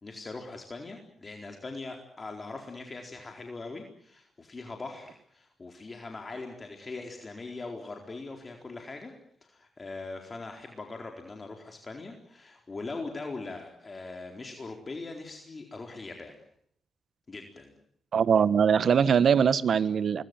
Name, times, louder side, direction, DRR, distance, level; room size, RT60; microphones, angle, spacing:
voice 1, 0.0-9.1 9.4-16.4 17.3-17.7, left 3 dB, 40° left, 3 dB, 4.2 m, -41 dB
voice 2, 18.1-20.2, right 7 dB, 60° right, 16 dB, 1.2 m, -22 dB
25.0 x 21.0 x 9.3 m, 0.70 s
hypercardioid pair, 45°, 0 cm